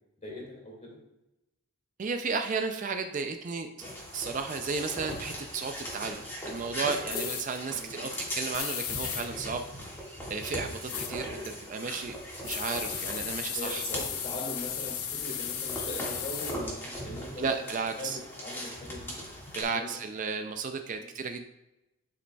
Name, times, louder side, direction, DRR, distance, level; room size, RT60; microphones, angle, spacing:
voice 1, 0.2-1.0 7.7-8.1 13.5-17.5 18.0-19.1 19.7-19.9 20.9-21.1, left 1 dB, 30° left, -2 dB, 2.2 m, -41 dB
voice 2, 2.0-3.9 4.1-9.6 10.3-10.8 11.1-12.2 12.4-13.8 17.4-18.2 19.6-21.4, right 5 dB, 35° right, 6 dB, 0.3 m, -33 dB
sound 1, 3.8-19.6, equal, 10° left, 1.7 m, -39 dB
sound 2, 7.1-7.4 8.5-9.2 10.9-11.1 12.4-16.5, left 9 dB, 80° left, 0.7 m, -35 dB
9.8 x 5.1 x 2.2 m, 0.94 s
head